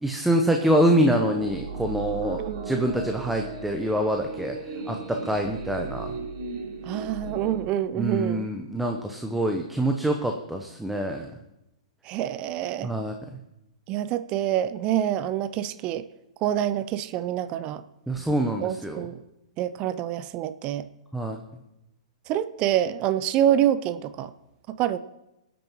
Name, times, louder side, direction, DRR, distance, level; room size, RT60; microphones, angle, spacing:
voice 1, 0.0-4.6 4.9-6.1 7.9-11.3 12.8-13.1 18.1-19.1 21.1-21.4, right 1 dB, 5° right, 3 dB, 0.9 m, -25 dB
sound 1, 0.6-7.6, right 4 dB, 50° right, 5.6 m, -36 dB
voice 2, 2.4-2.7 6.8-8.5 12.0-12.9 13.9-16.1 16.4-17.8 18.6-19.2 19.6-20.9 22.3-24.3 24.7-25.0, right 11 dB, 30° right, 13 dB, 0.5 m, -26 dB
22.5 x 9.2 x 3.0 m, 0.89 s
figure-of-eight pair, 110°, 3 cm